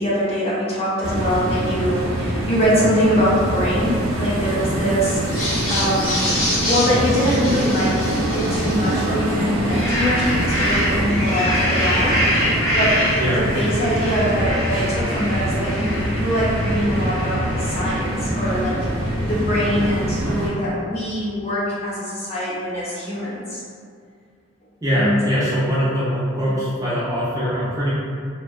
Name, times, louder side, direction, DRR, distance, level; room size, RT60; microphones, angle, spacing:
voice 1, 0.0-6.3 6.7-12.2 12.7-13.0 13.3-23.6 24.9-25.2 26.5-26.6, equal, 30° left, -8 dB, 0.6 m, -23 dB
sound 1, 1.0-20.5, right 1 dB, 85° right, 0.4 m, -24 dB
sound 2, 5.2-9.1 9.5-18.2, equal, 80° left, 0.9 m, -25 dB
voice 2, 24.8-27.9, equal, 15° right, -9 dB, 0.4 m, -22 dB
2.7 x 2.2 x 2.4 m, 2.2 s
head